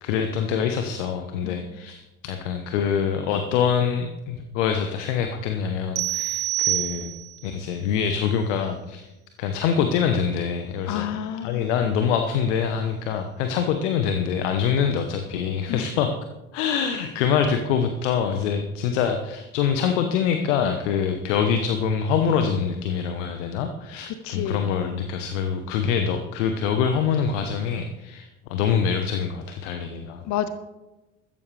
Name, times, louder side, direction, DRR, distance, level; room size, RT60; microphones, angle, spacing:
voice 1, 0.0-7.1 7.4-9.1 9.4-11.1 11.4-16.2 16.5-30.3, left 7 dB, 70° left, 6 dB, 1.2 m, -25 dB
sound 1, 6.0-7.5, right 14 dB, 85° right, 0.6 m, -26 dB
voice 2, 10.9-11.7 15.7-15.9 24.1-24.8 30.2-30.5, left 10 dB, 50° left, 10 dB, 1.0 m, -30 dB
14.5 x 14.0 x 3.4 m, 1.0 s
figure-of-eight pair, 60°, 38 cm